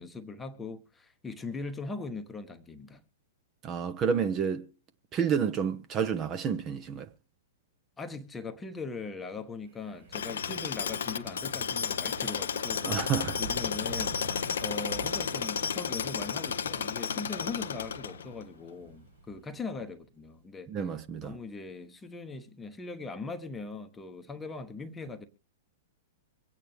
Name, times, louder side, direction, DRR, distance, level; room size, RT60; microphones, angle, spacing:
voice 1, 0.0-3.0 8.0-12.9 13.4-14.1 14.6-20.7 21.2-25.3, left 4 dB, 10° left, 1.0 m, -40 dB
voice 2, 3.6-4.7 5.1-7.1 12.8-13.4 20.7-21.4, right 7 dB, 25° right, 0.9 m, -30 dB
Wind, 9.6-19.9, right 3 dB, 75° right, 5.0 m, -47 dB
Tools, 10.1-18.4, left 7 dB, 60° left, 0.6 m, -33 dB
24.0 x 8.7 x 3.2 m
figure-of-eight pair, 105°, 0 cm